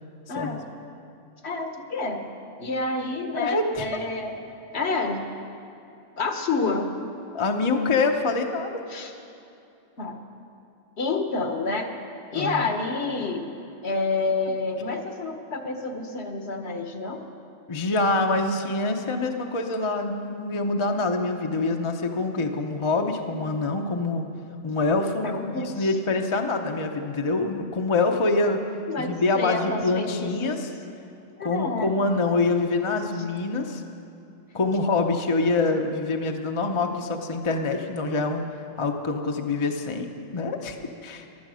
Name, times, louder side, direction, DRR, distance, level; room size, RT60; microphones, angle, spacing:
voice 1, 0.3-0.6 1.4-2.2 2.6-4.3 4.7-5.2 6.2-6.9 8.9-9.1 10.0-10.2 11.0-11.9 12.3-13.4 13.8-17.2 25.2-25.9 28.9-30.6 31.4-32.0, left 3 dB, 60° left, 5 dB, 1.4 m, -28 dB
voice 2, 3.3-3.9 7.3-8.8 12.3-12.6 17.7-24.2 24.6-28.6 29.0-30.7 31.4-33.8 34.5-38.4 38.8-40.1 40.3-40.8 41.0-41.3, left 3 dB, 30° left, 3 dB, 0.7 m, -25 dB
15.5 x 11.5 x 6.2 m, 2.7 s
omnidirectional pair, 1.3 m